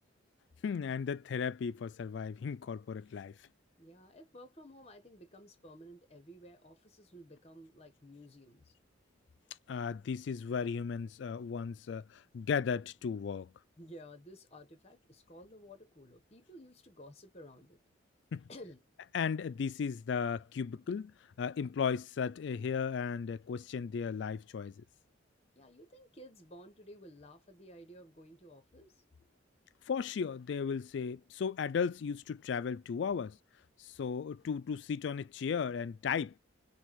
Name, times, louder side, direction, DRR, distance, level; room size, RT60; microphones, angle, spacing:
voice 1, 0.6-3.4 9.7-13.5 18.3-18.4 19.1-24.8 29.9-33.4 33.8-36.3, left 6 dB, 65° left, 0.3 m, -35 dB
voice 2, 3.8-8.7 13.8-17.8 18.5-18.8 25.5-29.0, equal, 30° left, 1.3 m, -53 dB
5.9 x 2.4 x 3.1 m
head